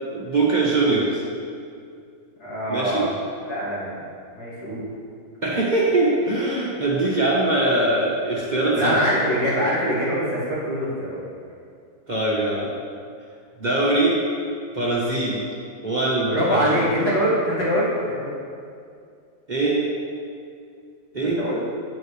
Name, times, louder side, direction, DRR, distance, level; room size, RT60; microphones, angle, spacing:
voice 1, 0.1-1.2 2.7-3.1 5.4-9.0 12.1-12.7 13.6-14.1 14.7-15.4 15.8-17.1 19.5-19.8 21.1-21.4, right 2 dB, 35° right, -5 dB, 1.1 m, -22 dB
voice 2, 2.4-3.1 3.4-4.0 4.3-4.9 8.7-11.2 16.3-18.3 21.2-21.6, equal, 85° left, -8 dB, 2.8 m, -24 dB
8.5 x 7.7 x 3.3 m, 2.4 s
omnidirectional pair, 1.7 m